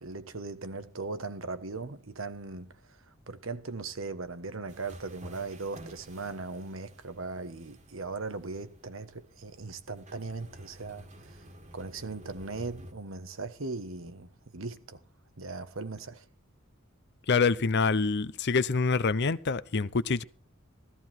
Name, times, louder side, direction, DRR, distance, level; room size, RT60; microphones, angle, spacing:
voice 1, 0.0-11.4 11.7-15.0 15.4-16.2, right 3 dB, 75° right, 1.3 m, -39 dB
sound 1, 4.7-12.9, equal, 35° right, 1.9 m, -51 dB
voice 2, 17.3-20.2, left 4 dB, 55° left, 0.7 m, -26 dB
14.5 x 14.5 x 4.5 m
head